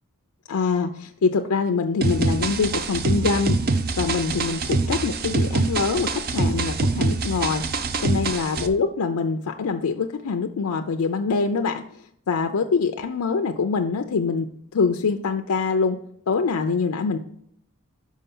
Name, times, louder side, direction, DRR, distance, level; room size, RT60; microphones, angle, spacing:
voice 1, 0.5-3.6 4.0-7.6 8.0-11.8 12.3-16.0 16.3-17.2, left 5 dB, 90° left, 5 dB, 0.5 m, -24 dB
sound 1, 2.0-8.7, right 3 dB, 45° right, 0.5 m, -24 dB
5.6 x 4.8 x 5.4 m, 0.70 s
head